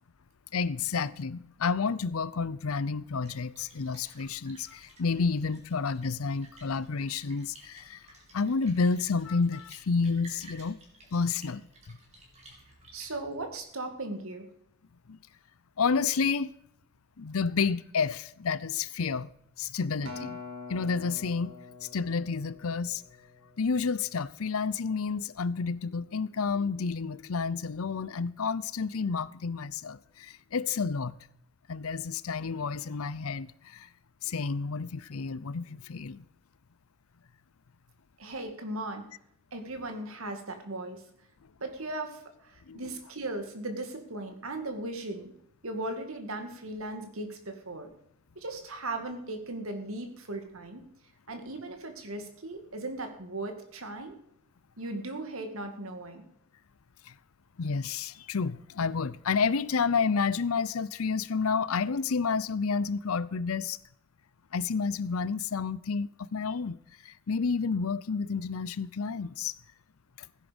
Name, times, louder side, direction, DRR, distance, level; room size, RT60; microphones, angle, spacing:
voice 1, 0.5-8.0 8.3-10.8 11.1-11.7 15.1-15.2 15.8-16.5 17.2-19.3 19.6-20.4 20.7-21.5 21.8-23.0 23.6-31.1 31.7-33.9 34.2-36.2 42.7-42.8 57.1-57.2 57.6-63.8 64.5-69.5, left 5 dB, 80° left, 0.6 m, -30 dB
Splash splatter, 3.0-13.6, right 1 dB, 30° right, 3.6 m, -55 dB
voice 2, 12.9-14.5 38.2-39.0 39.5-41.0 41.6-45.3 45.6-47.9 48.4-50.8 51.3-54.2 54.8-56.3, right 2 dB, 75° right, 2.2 m, -37 dB
Acoustic guitar, 20.1-24.5 25.1-25.3, left 3 dB, 55° right, 2.3 m, -45 dB
16.5 x 10.0 x 5.3 m
head